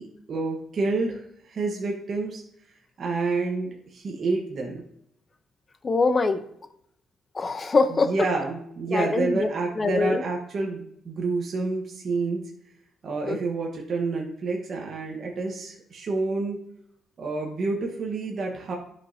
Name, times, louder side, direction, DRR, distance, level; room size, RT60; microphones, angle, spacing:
voice 1, 0.0-2.4 3.0-4.8 8.1-12.4 13.0-16.6 17.2-18.7, right 3 dB, 50° right, -1 dB, 1.2 m, -28 dB
voice 2, 5.8-6.4 7.3-8.3 8.9-9.5 9.8-10.2 13.3-13.4, left 3 dB, 35° left, 10 dB, 0.7 m, -23 dB
11.0 x 5.3 x 2.8 m, 0.72 s
cardioid pair, 90°, 0 cm